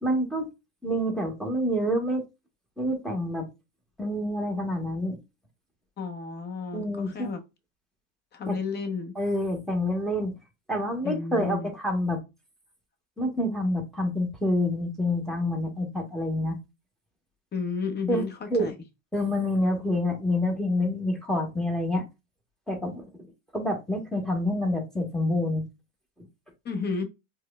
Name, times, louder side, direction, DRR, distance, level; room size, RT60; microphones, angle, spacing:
voice 1, 0.0-0.5 0.8-2.2 2.8-3.5 4.0-5.2 6.7-7.3 8.5-8.6 9.2-10.4 10.7-12.2 13.2-16.6 18.1-18.2 18.5-18.7 19.1-22.0 22.7-23.0 23.5-25.6, left 1 dB, ahead, 1.0 m, -27 dB
voice 2, 6.0-7.4 8.3-9.1 11.0-11.7 17.5-18.7 26.6-27.1, left 5 dB, 25° left, 0.8 m, -32 dB
4.7 x 2.2 x 2.2 m
supercardioid pair, 105°, 40 cm